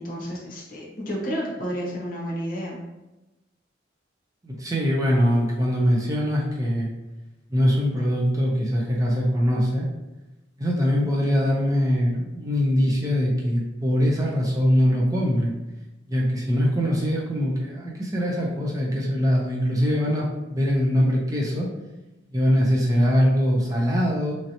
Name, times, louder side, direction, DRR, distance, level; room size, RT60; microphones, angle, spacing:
voice 1, 0.0-2.8, equal, 45° left, -3 dB, 0.7 m, -31 dB
voice 2, 4.4-6.9 7.5-9.9 10.6-15.5 16.1-21.7 22.3-24.4, equal, 20° right, -3 dB, 0.4 m, -22 dB
3.1 x 2.7 x 2.7 m, 1.0 s
head